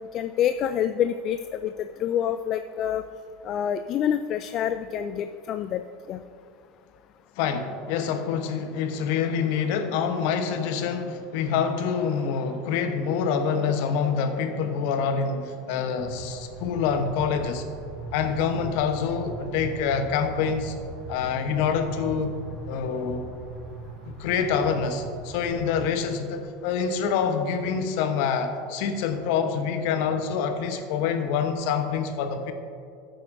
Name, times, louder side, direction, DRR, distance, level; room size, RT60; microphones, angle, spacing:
voice 1, 0.1-3.0 3.4-5.8 6.1-6.2, left 9 dB, 45° left, 10 dB, 0.3 m, -27 dB
voice 2, 7.4-17.6 18.1-20.7 21.1-22.4 22.7-23.2 24.0-32.5, left 6 dB, 60° left, 7 dB, 0.9 m, -26 dB
sound 1, 16.0-26.0, right 3 dB, 55° right, 1.0 m, -40 dB
14.0 x 7.7 x 2.6 m, 2.4 s
hypercardioid pair, 80°, 0 cm